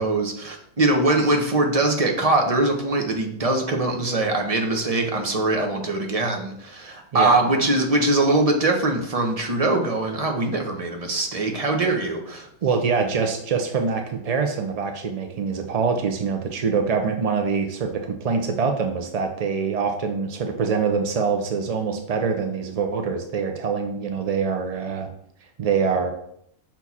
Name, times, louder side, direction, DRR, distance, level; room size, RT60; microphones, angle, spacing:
voice 1, 0.0-12.5, right 2 dB, 30° right, 3 dB, 0.8 m, -22 dB
voice 2, 12.6-25.1 25.6-26.1, right 5 dB, 65° right, 5 dB, 0.3 m, -24 dB
5.8 x 4.5 x 4.1 m, 0.70 s
omnidirectional pair, 1.4 m